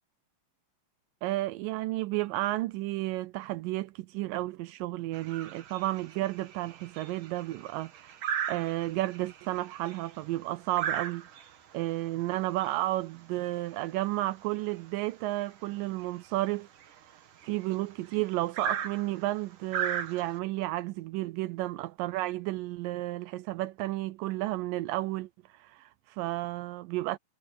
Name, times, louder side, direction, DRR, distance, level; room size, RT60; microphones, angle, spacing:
voice 1, 1.2-8.2 8.5-16.7 17.0-27.2, right 17 dB, 85° right, 2.4 m, -32 dB
sound 1, 5.1-20.4, right 8 dB, 70° right, 3.3 m, -39 dB
omnidirectional pair, 3.8 m